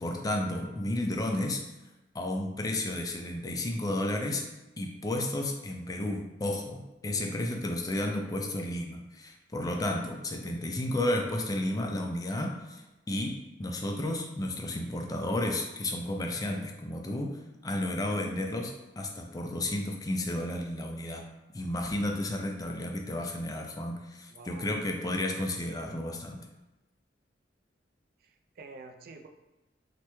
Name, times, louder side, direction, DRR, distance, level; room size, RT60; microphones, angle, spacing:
voice 1, 0.0-1.6 2.1-4.4 4.8-21.2 21.5-26.4, left 1 dB, 20° left, 2 dB, 0.4 m, -32 dB
voice 2, 24.3-24.8 28.2-29.3, right 3 dB, 55° right, 4 dB, 0.4 m, -48 dB
3.3 x 2.1 x 3.0 m, 1.0 s
head